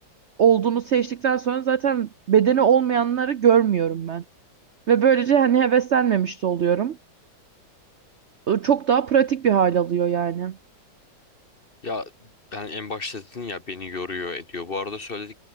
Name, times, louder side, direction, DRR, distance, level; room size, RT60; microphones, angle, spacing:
voice 1, 0.4-4.2 4.9-7.0 8.5-10.6, right 8 dB, 65° right, 0.6 m, -20 dB
voice 2, 11.8-15.4, left 3 dB, 35° left, 1.1 m, -33 dB
omnidirectional pair, 2.1 m